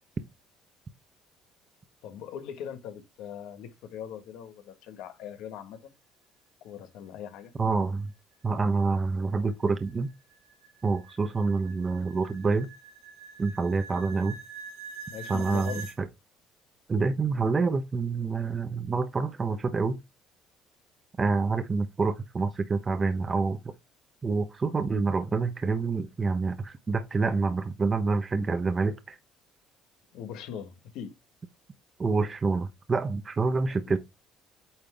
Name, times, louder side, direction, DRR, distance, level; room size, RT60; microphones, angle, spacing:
voice 1, 2.0-5.9 6.6-7.5 15.1-15.9 30.1-31.1 33.9-34.0, left 8 dB, 75° left, 1.4 m, -40 dB
voice 2, 7.6-8.1 8.4-10.1 10.8-12.7 13.4-14.4 15.3-16.1 16.9-20.0 21.2-23.7 24.2-29.2 32.0-34.0, right 4 dB, 30° right, 0.9 m, -27 dB
sound 1, 8.8-16.0, right 5 dB, 85° right, 2.1 m, -45 dB
8.8 x 3.7 x 3.5 m
supercardioid pair, 85°, 0 cm